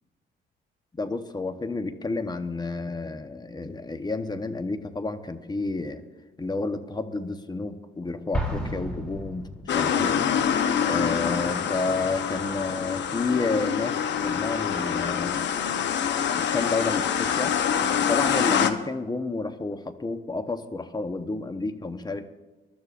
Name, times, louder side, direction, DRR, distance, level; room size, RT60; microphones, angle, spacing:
voice 1, 0.9-6.0 6.4-9.5 9.7-10.2 10.9-15.4 16.3-17.6 18.0-22.3, left 3 dB, 20° left, 9 dB, 0.9 m, -30 dB
Explosion, 8.3-10.1, equal, 5° left, 2.9 m, -32 dB
sound 1, 9.7-18.7, left 8 dB, 65° left, 0.9 m, -25 dB
23.0 x 12.0 x 2.5 m, 1.2 s
cardioid pair, 90°, 20 cm